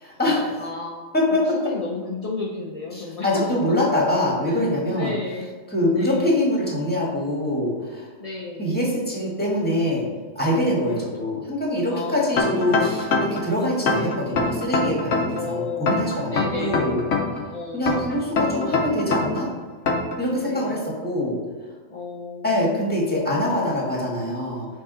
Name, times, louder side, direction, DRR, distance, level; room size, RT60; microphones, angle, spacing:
voice 1, 0.0-0.6 1.1-1.4 2.9-5.1 5.7-8.1 8.6-10.1 10.3-17.0 17.7-19.5 20.2-21.4 22.4-24.7, left 1 dB, 5° left, -4 dB, 1.5 m, -24 dB
voice 2, 0.6-1.2 1.5-3.4 4.5-4.6 4.9-5.5 5.9-6.3 8.2-8.7 10.8-11.3 11.9-12.9 13.9-14.3 15.3-17.1 17.4-18.2 20.4-20.8 21.9-22.7, left 4 dB, 40° left, -3 dB, 0.6 m, -33 dB
sound 1, 12.4-13.4 13.9-15.4 15.9-17.4 17.9-19.4 19.9-20.2, left 3 dB, 70° left, 1.2 m, -22 dB
6.2 x 4.0 x 3.9 m, 1.5 s
omnidirectional pair, 1.4 m